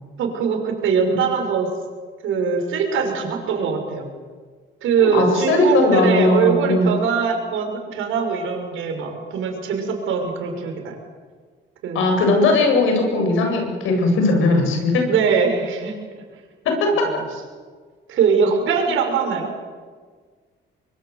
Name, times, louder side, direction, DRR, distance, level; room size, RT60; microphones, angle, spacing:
voice 1, 0.2-1.7 2.2-4.1 4.8-11.0 11.8-12.1 15.1-15.9 17.0-17.2 18.1-19.5, right 6 dB, 85° right, 3 dB, 6.0 m, -22 dB
voice 2, 5.0-6.9 11.9-15.1 16.6-17.1, left 2 dB, 90° left, 3 dB, 7.8 m, -18 dB
24.5 x 24.5 x 8.1 m, 1.5 s
cardioid pair, 90°, 20 cm